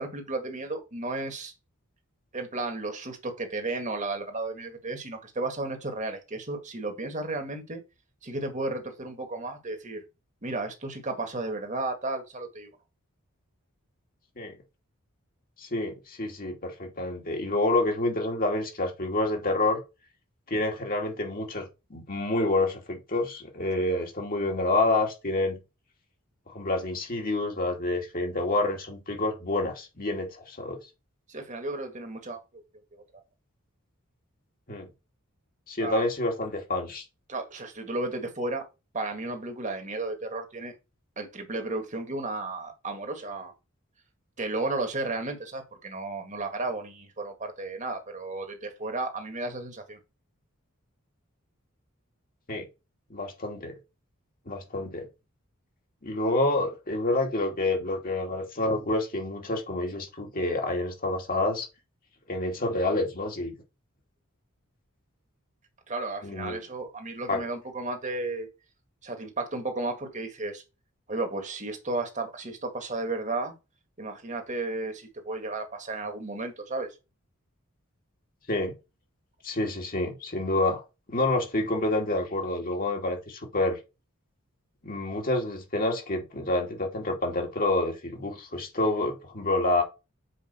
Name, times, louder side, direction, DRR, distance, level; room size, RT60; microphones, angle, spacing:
voice 1, 0.0-1.5 2.3-7.8 8.2-10.0 10.4-12.7 23.8-23.9 31.3-32.4 32.9-33.0 35.8-36.0 37.3-38.6 38.9-40.7 41.2-43.5 44.4-50.0 65.9-68.5 69.0-70.6 71.1-73.5 74.0-76.9, right 2 dB, 35° right, 1.9 m, -33 dB
voice 2, 15.6-19.8 20.5-21.6 21.9-25.6 26.5-30.8 34.7-34.9 35.7-37.0 52.5-52.7 53.1-53.8 54.5-55.1 56.0-61.7 62.3-63.5 66.2-66.6 67.3-67.4 78.5-78.7 79.4-80.8 81.1-83.8 84.8-89.8, left 2 dB, 40° left, 2.5 m, -28 dB
7.2 x 5.1 x 4.5 m
head